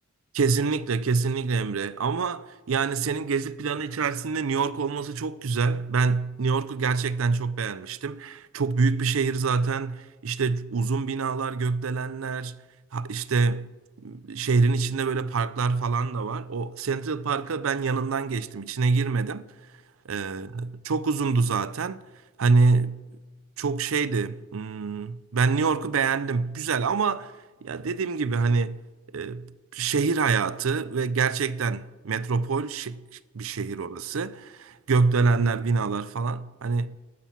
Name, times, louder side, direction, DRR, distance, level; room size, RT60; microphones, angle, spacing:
voice 1, 0.3-12.6 12.9-13.7 14.0-19.5 20.1-22.0 22.4-23.1 23.6-27.3 27.6-28.8 29.1-33.0 33.3-37.0, right 4 dB, 85° right, 0.6 m, -26 dB
13.5 x 11.5 x 5.8 m
head